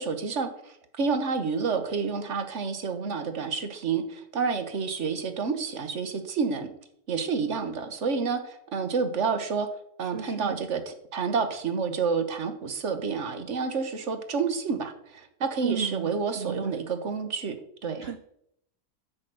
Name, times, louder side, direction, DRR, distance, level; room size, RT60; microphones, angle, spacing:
voice 1, 0.0-6.7 7.1-9.7 10.0-17.6 17.8-18.1, right 5 dB, 50° right, 8 dB, 1.4 m, -29 dB
voice 2, 10.0-10.6 15.6-16.7 18.0-18.2, right 7 dB, 85° right, 11 dB, 0.5 m, -34 dB
10.0 x 5.3 x 7.6 m, 0.74 s
omnidirectional pair, 1.8 m